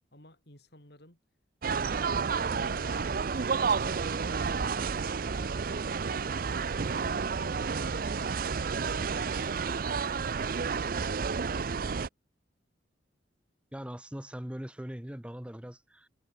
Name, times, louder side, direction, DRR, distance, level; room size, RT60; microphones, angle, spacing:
voice 1, 0.1-1.2 1.9-2.2 2.7-5.6 6.2-8.2 8.7-11.3, left 1 dB, 55° left, 7.4 m, -56 dB
sound 1, 1.6-12.1, right 5 dB, 45° right, 0.5 m, -31 dB
sound 2, 2.5-9.4, right 2 dB, 65° right, 3.2 m, -45 dB
voice 2, 13.7-16.1, equal, 5° right, 0.7 m, -41 dB
head